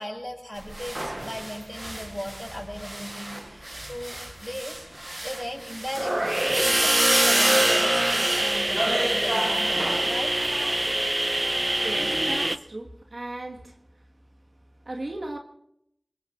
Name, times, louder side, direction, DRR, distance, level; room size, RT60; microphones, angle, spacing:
voice 1, 0.0-4.9 5.2-10.3, equal, 10° left, 1 dB, 5.7 m, -37 dB
sound 1, 0.7-2.5 2.8-12.6, right 1 dB, 35° right, 0.7 m, -25 dB
voice 2, 11.8-13.8 14.8-15.4, right 1 dB, 70° right, 1 dB, 1.7 m, -36 dB
25.0 x 22.0 x 2.6 m, 0.76 s
wide cardioid pair, 40°, 0 cm